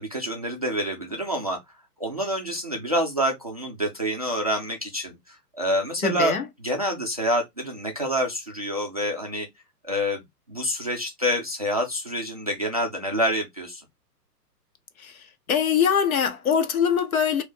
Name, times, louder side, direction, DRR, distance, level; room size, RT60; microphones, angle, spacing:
voice 1, 0.0-1.6 2.0-6.3 6.6-9.5 9.8-10.2 10.5-13.8, equal, 25° right, 0.3 m, -27 dB
voice 2, 6.0-6.5 15.0-15.2 15.5-17.4, left 7 dB, 60° left, 1.0 m, -23 dB
3.7 x 2.7 x 3.4 m
figure-of-eight pair, 120°, 49 cm